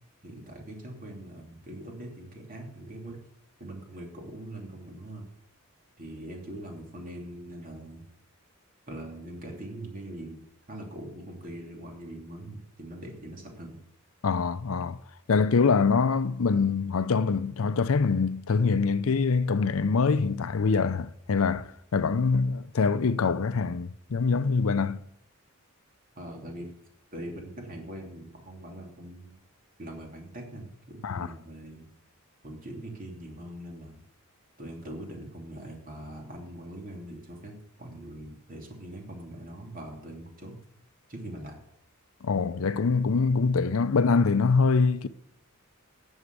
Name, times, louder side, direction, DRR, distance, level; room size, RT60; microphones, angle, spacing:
voice 1, 0.2-3.3 3.6-5.3 6.0-8.1 8.9-10.4 10.7-13.8 26.1-26.7 27.1-29.4 29.8-31.9 32.4-34.0 34.6-40.6 41.1-41.6, right 1 dB, 40° right, 3.0 m, -42 dB
voice 2, 14.2-15.0 15.3-25.0 31.0-31.3 42.2-45.1, left 4 dB, 70° left, 0.5 m, -24 dB
11.0 x 7.3 x 8.3 m
head